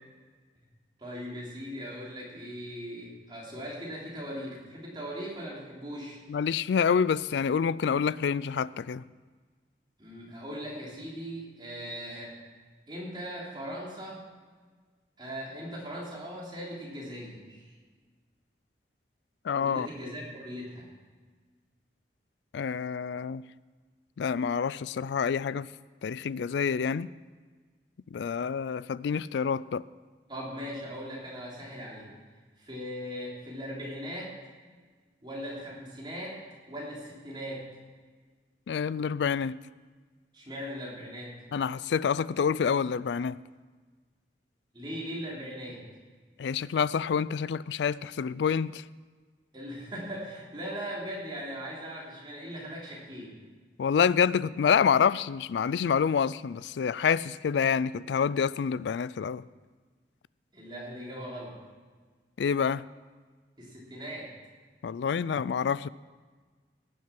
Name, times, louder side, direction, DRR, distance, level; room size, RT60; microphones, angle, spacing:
voice 1, 1.0-6.2 10.0-12.4 12.9-14.2 15.2-17.7 19.6-20.9 30.3-32.1 32.6-34.3 35.2-36.4 36.7-37.7 40.3-41.3 44.7-45.8 49.5-53.3 60.5-61.6 63.6-64.3, equal, 25° right, 3.3 m, -39 dB
voice 2, 6.3-9.0 19.4-19.9 22.5-23.4 24.2-25.7 26.0-27.1 28.1-29.8 38.7-39.6 41.5-43.4 46.4-48.8 53.8-59.4 62.4-62.8 64.8-65.9, left 6 dB, 75° left, 0.3 m, -27 dB
17.5 x 7.6 x 6.0 m
head